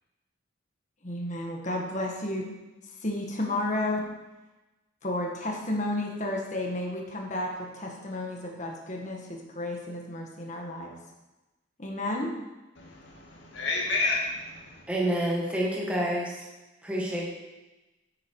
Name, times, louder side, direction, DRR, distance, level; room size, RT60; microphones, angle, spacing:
voice 1, 1.0-2.5 3.0-4.1 5.0-10.9 11.8-12.4, left 1 dB, 40° left, 0 dB, 1.6 m, -32 dB
voice 2, 12.8-14.8, left 3 dB, 65° left, -1 dB, 2.4 m, -30 dB
voice 3, 14.9-16.3 16.8-17.3, right 1 dB, 5° right, -3 dB, 1.8 m, -28 dB
9.7 x 8.6 x 4.7 m, 1.1 s
head